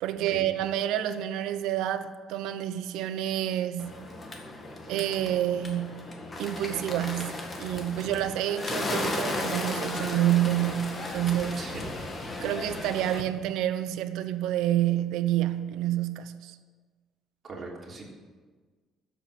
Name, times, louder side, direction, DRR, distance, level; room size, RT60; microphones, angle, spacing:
voice 1, 0.0-3.9 4.9-6.1 6.4-11.6 12.4-16.6, right 12 dB, 90° right, 0.9 m, -28 dB
Bird, 3.8-13.2, left 2 dB, 25° left, 1.9 m, -35 dB
voice 2, 11.6-11.9 17.4-18.0, right 3 dB, 30° right, 3.4 m, -40 dB
12.0 x 8.1 x 9.1 m
cardioid pair, 140°, 0 cm